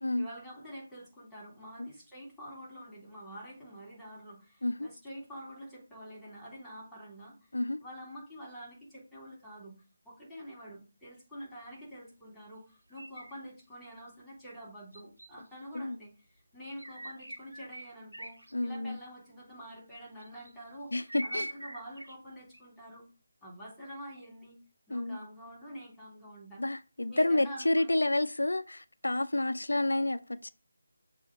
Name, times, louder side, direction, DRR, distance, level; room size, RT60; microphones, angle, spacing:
voice 1, 0.2-7.5 7.8-16.1 16.5-23.0 23.4-24.6 24.9-26.6 27.1-28.0, equal, 5° left, 3.1 m, -47 dB
sound 1, 12.9-13.5 13.9-14.0 14.9-15.6 16.8-18.5 18.9-19.2 20.2-20.7 21.1-22.2 22.5-22.6, right 1 dB, 90° right, 1.3 m, -42 dB
voice 2, 18.5-19.0 20.9-21.5 24.9-25.2 26.6-30.5, left 2 dB, 80° left, 0.5 m, -30 dB
7.0 x 2.8 x 4.9 m
figure-of-eight pair, 160°, 0 cm